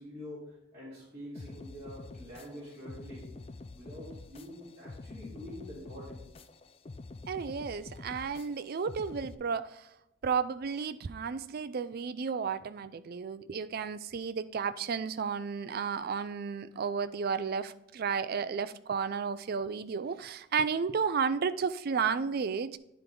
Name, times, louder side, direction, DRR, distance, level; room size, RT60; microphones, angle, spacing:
voice 1, 0.0-3.3 3.7-6.2, equal, 15° right, 2.5 m, -46 dB
sound 1, 1.4-9.4, left 3 dB, 30° left, 0.4 m, -47 dB
voice 2, 7.3-9.9 10.2-22.8, right 6 dB, 45° right, 0.4 m, -33 dB
10.0 x 4.6 x 3.8 m
head